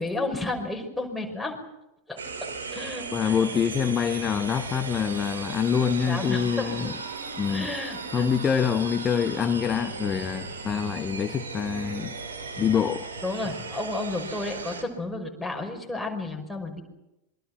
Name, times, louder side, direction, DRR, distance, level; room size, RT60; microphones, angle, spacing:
voice 1, 0.0-1.6 2.1-2.2 2.7-3.4 6.1-7.0 7.5-8.3 13.2-16.8, left 2 dB, ahead, 5.8 m, -32 dB
sound 1, 2.2-14.8, right 4 dB, 70° right, 4.3 m, -37 dB
voice 2, 3.1-7.0 7.4-7.7 8.1-12.2 12.6-13.1, left 7 dB, 25° left, 1.2 m, -25 dB
27.0 x 24.0 x 6.2 m
figure-of-eight pair, 90°, 0 cm